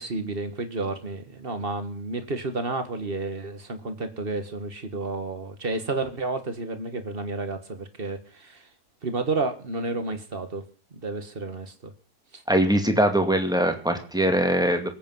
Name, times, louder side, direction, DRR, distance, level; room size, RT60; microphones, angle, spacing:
voice 1, 0.0-8.7 9.0-10.6 10.9-11.9 12.3-12.4, right 3 dB, 35° right, 9 dB, 1.9 m, -31 dB
voice 2, 12.5-14.9, right 1 dB, ahead, 5 dB, 2.3 m, -22 dB
23.5 x 8.8 x 5.7 m, 0.41 s
omnidirectional pair, 1.6 m